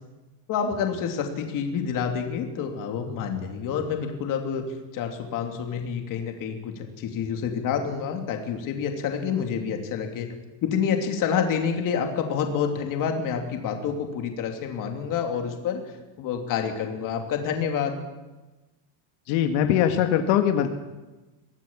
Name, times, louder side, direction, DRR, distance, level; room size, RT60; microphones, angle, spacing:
voice 1, 0.5-4.6 4.9-10.3 10.6-15.8 16.2-18.0, left 7 dB, 40° left, 4 dB, 2.8 m, -28 dB
voice 2, 19.3-20.7, left 10 dB, 80° left, 5 dB, 1.9 m, -21 dB
23.5 x 17.0 x 7.3 m, 1.1 s
cardioid pair, 180°, 48 cm